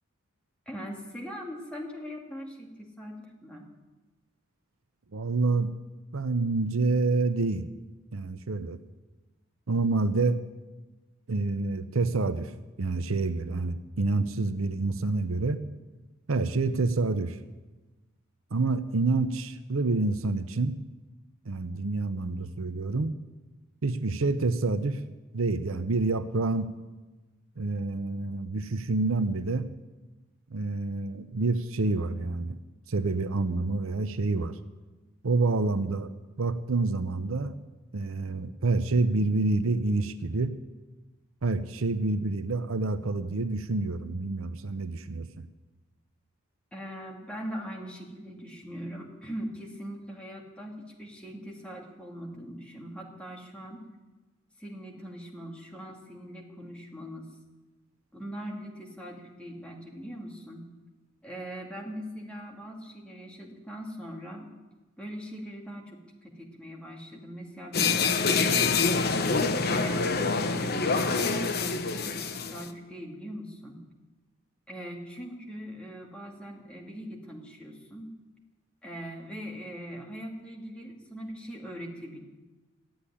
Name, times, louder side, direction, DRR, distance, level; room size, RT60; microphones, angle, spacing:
voice 1, 0.7-3.7 46.7-53.8 54.6-57.3 58.1-60.7 61.2-64.5 65.0-69.0 69.7-73.8 74.7-78.1 78.8-82.2, equal, 5° left, -1 dB, 2.3 m, -41 dB
voice 2, 5.1-5.7 6.1-7.7 8.1-8.8 9.7-10.4 11.3-15.6 16.3-17.4 18.5-20.7 21.5-23.1 23.8-25.0 25.3-26.7 27.6-29.7 30.5-32.6 32.9-34.6 35.2-36.1 36.4-37.5 37.9-40.6 41.4-45.3, right 3 dB, 70° right, 11 dB, 0.7 m, -28 dB
sound 1, 67.7-72.7, left 4 dB, 45° left, 1.0 m, -26 dB
14.5 x 8.6 x 10.0 m, 1.2 s
head